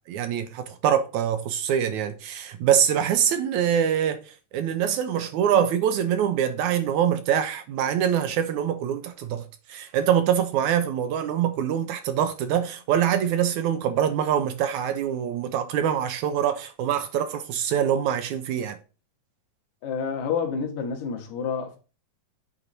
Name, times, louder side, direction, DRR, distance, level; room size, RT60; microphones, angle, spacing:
voice 1, 0.1-9.4 9.7-18.8, right 9 dB, 75° right, 1.9 m, -24 dB
voice 2, 19.8-21.8, left 6 dB, 65° left, 2.9 m, -29 dB
8.8 x 4.1 x 4.3 m
omnidirectional pair, 3.9 m